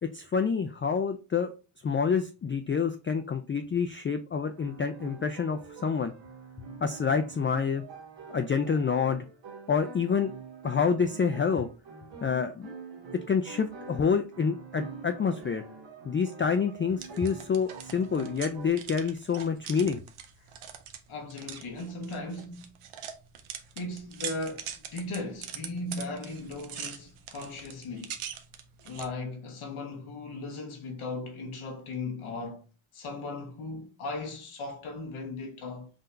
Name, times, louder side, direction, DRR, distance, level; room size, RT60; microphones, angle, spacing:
voice 1, 0.0-1.5 1.8-6.1 6.6-7.8 8.3-9.2 9.7-10.3 10.6-11.7 12.2-12.7 13.1-15.6 16.0-20.0, left 6 dB, 25° left, 0.3 m, -28 dB
sound 1, 4.5-18.7, right 4 dB, 65° right, 1.1 m, -46 dB
sound 2, 16.9-29.1, right 8 dB, 85° right, 0.7 m, -43 dB
voice 2, 21.1-22.7 23.8-28.2 28.8-32.6 32.9-35.9, left 2 dB, 85° left, 1.1 m, -37 dB
3.8 x 2.7 x 3.3 m
cardioid pair, 60°, 48 cm